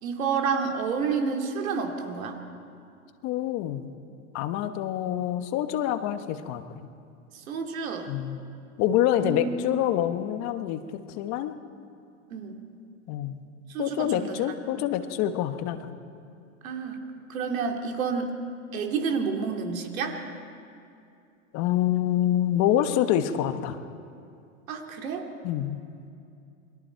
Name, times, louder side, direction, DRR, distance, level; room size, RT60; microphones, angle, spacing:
voice 1, 0.0-2.4 7.5-8.1 9.2-9.5 12.3-12.6 13.7-14.3 14.8-14.9 16.6-17.0 17.3-18.4 18.7-20.2 24.7-25.3, right 5 dB, 80° right, 3 dB, 2.9 m, -29 dB
voice 2, 3.2-3.9 4.3-6.9 8.1-8.4 8.8-11.5 13.1-13.4 13.8-15.9 21.5-23.8 25.4-25.8, left 11 dB, 40° left, 9 dB, 1.2 m, -26 dB
28.5 x 22.0 x 4.6 m, 2.5 s
supercardioid pair, 130°, 40 cm